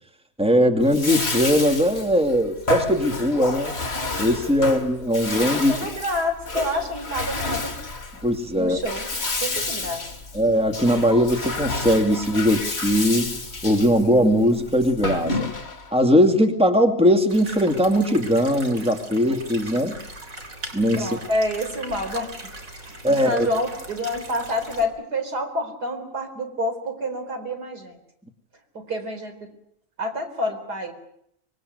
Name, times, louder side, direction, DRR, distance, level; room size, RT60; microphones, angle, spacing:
voice 1, 0.4-3.7 4.2-5.7 8.2-8.8 10.3-13.4 13.6-15.5 15.9-20.0 20.7-21.2 23.0-23.5, equal, 5° right, 4 dB, 2.4 m, -20 dB
Bathtub (filling or washing), 0.8-15.9, left 2 dB, 40° left, 2.6 m, -30 dB
voice 2, 5.5-7.8 8.5-9.1 9.4-10.1 21.0-22.3 22.8-28.0 28.7-29.3 30.0-30.9, left 1 dB, 85° right, 6 dB, 4.7 m, -28 dB
sound 1, 17.3-24.8, right 2 dB, 55° right, 4.0 m, -39 dB
24.5 x 22.0 x 8.0 m, 0.74 s
omnidirectional pair, 1.7 m